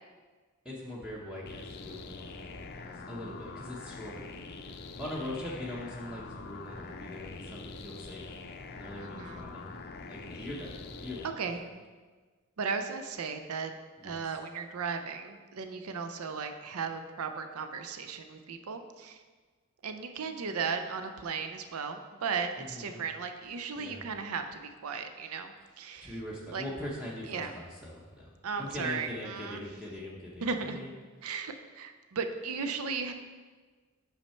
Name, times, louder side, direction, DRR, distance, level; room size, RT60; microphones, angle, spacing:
voice 1, 0.6-4.3 4.7-8.3 8.7-9.6 10.1-11.2 14.0-14.2 22.6-23.0 23.8-24.1 26.0-28.3 28.6-30.9, left 1 dB, 5° right, -5 dB, 0.8 m, -42 dB
sound 1, 1.5-11.3, left 4 dB, 50° left, 0.5 m, -44 dB
voice 2, 9.0-9.4 11.4-11.8 12.6-13.7 14.0-19.2 19.8-26.1 26.5-26.6 27.3-27.5 28.4-29.6 30.4-30.8 31.2-33.1, right 5 dB, 75° right, 7 dB, 0.5 m, -36 dB
5.9 x 5.6 x 4.3 m, 1.4 s
head